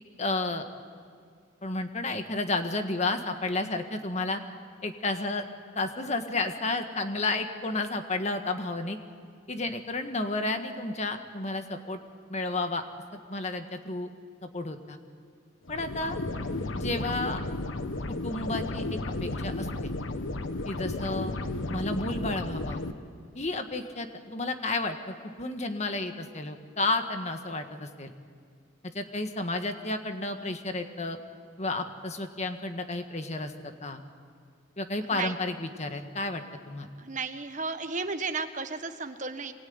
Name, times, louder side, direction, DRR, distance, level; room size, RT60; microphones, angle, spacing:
voice 1, 0.2-0.7 1.6-4.4 4.8-5.4 5.8-9.0 9.5-12.0 12.3-12.8 13.3-14.1 14.4-15.0 15.7-16.2 16.7-17.4 18.1-19.9 20.6-21.3 21.7-22.8 23.4-28.1 28.9-31.2 31.6-34.0 34.8-36.9, left 2 dB, 35° left, 7 dB, 1.6 m, -32 dB
sound 1, 15.7-22.9, left 2 dB, 85° left, 1.2 m, -33 dB
voice 2, 37.0-39.5, right 4 dB, 40° right, 8 dB, 1.3 m, -33 dB
25.0 x 20.5 x 9.6 m, 2.1 s
head